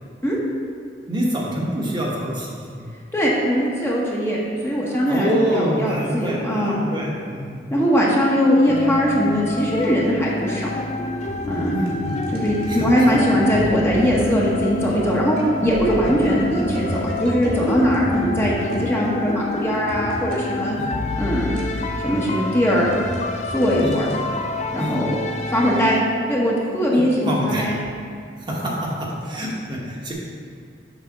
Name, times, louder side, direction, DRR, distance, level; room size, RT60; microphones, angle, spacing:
voice 1, 1.1-2.8 5.1-7.6 11.7-12.3 12.7-13.2 20.8-20.9 23.8-24.0 24.8-25.0 26.9-27.6 28.5-30.1, equal, 25° right, -4 dB, 1.0 m, -26 dB
voice 2, 3.1-4.4 4.6-6.8 7.7-10.7 11.5-11.7 12.3-15.4 15.6-20.7 21.2-21.6 22.0-22.9 23.5-24.1 24.7-25.1 25.5-27.8, equal, 15° left, -5 dB, 0.9 m, -20 dB
sound 1, 8.7-26.0, left 2 dB, 40° left, 0.4 m, -28 dB
sound 2, 11.3-18.8 19.9-20.4 21.6-22.0 22.8-24.2 25.6-27.5 27.8-27.9 28.5-29.5, equal, 55° right, 1.4 m, -33 dB
7.0 x 3.4 x 5.9 m, 2.2 s
head